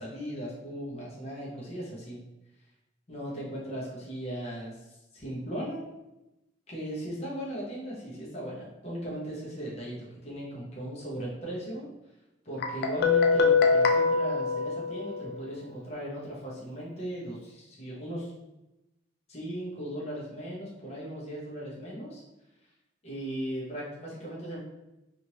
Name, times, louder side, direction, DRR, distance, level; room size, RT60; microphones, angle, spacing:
voice 1, 0.0-2.2 3.1-4.8 5.1-5.8 6.7-11.9 12.4-18.3 19.3-22.2 23.0-24.6, equal, 35° left, -6 dB, 0.8 m, -37 dB
Guitar, 12.6-15.4, left 5 dB, 55° left, 0.4 m, -24 dB
3.0 x 2.5 x 2.8 m, 0.95 s
head